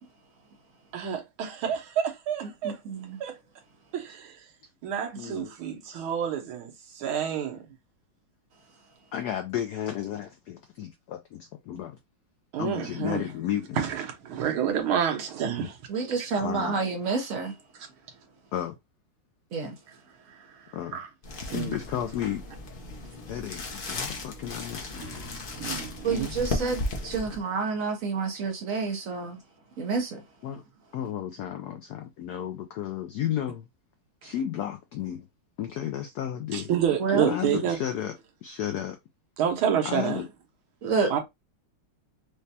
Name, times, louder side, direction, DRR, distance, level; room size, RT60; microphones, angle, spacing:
voice 1, 0.9-2.8 3.2-3.4 3.9-4.4 4.8-7.7 12.5-13.2 13.8-15.8 16.2-16.3 20.5-20.6 20.9-21.1 21.5-21.8 25.6-26.3 36.5-37.8 39.4-40.2 41.1-41.2, right 8 dB, 90° right, 1.8 m, -29 dB
voice 2, 2.6-3.2 5.1-5.2 15.9-17.5 19.5-19.8 26.0-29.4 29.8-30.2 37.0-37.4 40.8-41.1, right 4 dB, 60° right, 0.9 m, -29 dB
voice 3, 5.2-5.5 9.1-12.0 12.6-13.8 16.4-16.8 18.5-18.7 20.7-21.0 21.5-22.4 23.3-25.0 30.4-30.6 30.9-33.7 34.2-35.3 35.6-36.7 37.3-39.0 39.8-40.3, left 10 dB, 80° left, 0.8 m, -33 dB
sound 1, 21.2-27.4, left 2 dB, 65° left, 0.5 m, -35 dB
sound 2, 24.9-28.1, equal, 20° left, 0.6 m, -49 dB
5.0 x 2.2 x 2.7 m
omnidirectional pair, 2.2 m